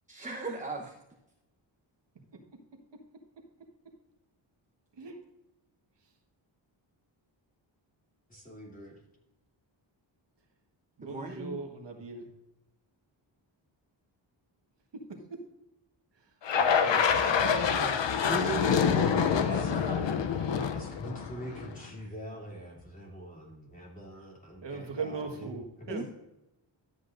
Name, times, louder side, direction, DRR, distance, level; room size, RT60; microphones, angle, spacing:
voice 1, 0.1-0.9 11.0-11.6 18.3-20.0 25.9-26.0, right 3 dB, 15° right, 1 dB, 1.0 m, -37 dB
voice 2, 8.3-9.0 19.5-25.5 25.8-26.0, right 1 dB, 15° left, -2 dB, 2.9 m, -45 dB
voice 3, 11.0-12.3 14.9-15.4 16.1-18.0 20.6-20.7 24.6-26.0, right 4 dB, 65° right, 3 dB, 1.6 m, -39 dB
sound 1, 16.5-21.8, left 7 dB, 65° left, 0.8 m, -26 dB
12.5 x 8.5 x 2.6 m, 0.90 s
wide cardioid pair, 105°, 46 cm